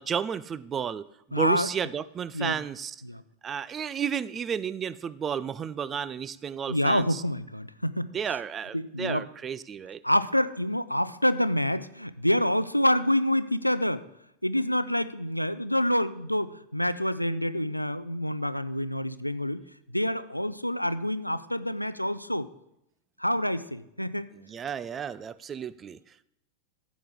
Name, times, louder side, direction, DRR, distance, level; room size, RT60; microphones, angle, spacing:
voice 1, 0.0-3.0 3.4-7.2 8.1-10.0 24.4-26.0, right 7 dB, 25° right, 18 dB, 0.4 m, -32 dB
voice 2, 1.3-1.7 2.3-2.6 3.0-3.2 6.7-8.1 8.7-9.3 10.0-14.0 14.4-19.6 19.9-22.5 23.2-24.3, left 1 dB, 90° left, 15 dB, 0.4 m, -27 dB
14.0 x 8.2 x 3.7 m, 0.83 s
figure-of-eight pair, 90°, 0 cm